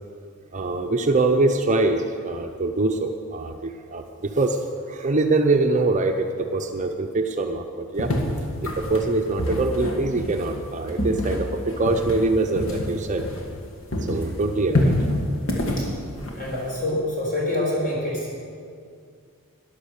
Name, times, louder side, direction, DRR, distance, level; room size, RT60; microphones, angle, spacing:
voice 1, 0.5-8.1 8.6-13.2 14.0-15.0, right 2 dB, 35° right, 5 dB, 0.6 m, -24 dB
sound 1, 8.0-13.7 13.9-16.8, left 1 dB, 60° left, 1.9 m, -27 dB
voice 2, 16.4-18.4, left 1 dB, 40° left, -3 dB, 4.1 m, -26 dB
13.5 x 10.0 x 6.6 m, 2.3 s
head